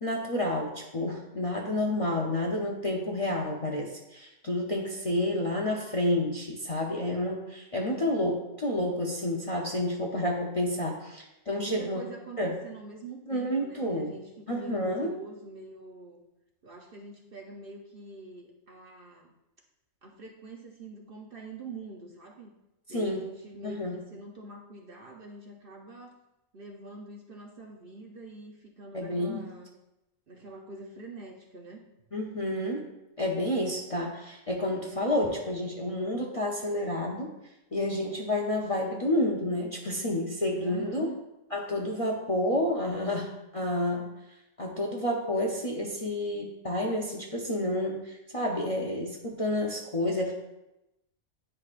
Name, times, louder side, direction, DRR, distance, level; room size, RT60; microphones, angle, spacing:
voice 1, 0.0-12.0 12.4-12.5 13.3-14.1 14.5-15.1 22.9-23.2 23.6-23.9 28.9-29.5 32.1-32.9 33.2-37.3 37.7-41.1 41.5-44.1 44.6-50.3, left 1 dB, 35° left, -1 dB, 0.6 m, -30 dB
voice 2, 7.8-8.1 11.5-16.2 16.6-19.3 20.0-22.5 22.9-26.2 26.5-29.7 30.3-31.8 40.6-41.2, right 3 dB, 50° right, 1 dB, 0.8 m, -45 dB
9.9 x 4.8 x 2.4 m, 0.93 s
omnidirectional pair, 1.4 m